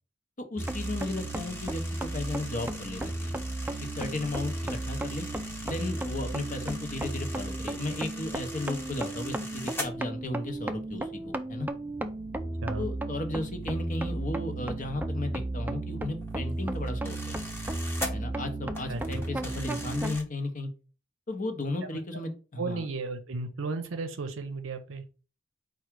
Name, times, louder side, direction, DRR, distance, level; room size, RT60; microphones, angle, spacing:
voice 1, 0.4-3.4 3.9-5.3 5.6-11.7 12.7-17.4 18.1-20.7 21.3-22.9, left 2 dB, 40° left, 6 dB, 0.8 m, -35 dB
sound 1, 0.6-9.9 13.6-13.7 14.1-14.3 16.0-18.1 18.7-20.2, left 1 dB, 10° left, 0.9 m, -42 dB
sound 2, 0.6-20.2, right 2 dB, 10° right, 0.3 m, -34 dB
voice 2, 18.9-19.2 22.6-25.1, right 3 dB, 75° right, 8 dB, 0.6 m, -34 dB
4.7 x 2.3 x 4.5 m, 0.35 s
head